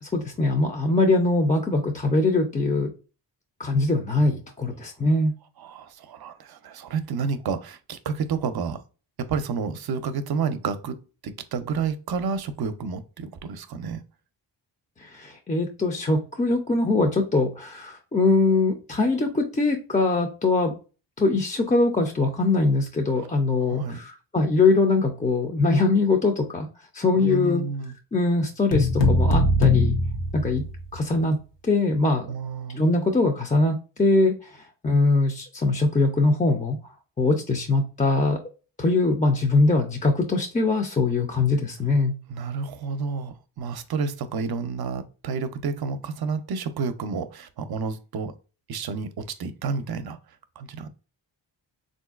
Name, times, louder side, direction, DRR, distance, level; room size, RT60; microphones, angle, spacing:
voice 1, 0.0-2.9 3.6-5.3 15.0-20.7 21.2-26.7 26.9-27.6 28.1-30.0 30.3-30.6 30.9-32.3 32.7-36.8 37.2-38.4 38.8-42.1, left 3 dB, 20° left, 0.5 m, -22 dB
voice 2, 5.6-8.8 9.2-11.0 11.2-14.0 23.6-24.0 27.2-27.9 32.3-32.9 42.3-48.3 48.7-50.2 50.6-50.9, right 5 dB, 60° right, 0.6 m, -30 dB
sound 1, 28.7-31.0, left 2 dB, 80° left, 0.8 m, -21 dB
3.7 x 2.6 x 2.3 m
cardioid pair, 100°, 43 cm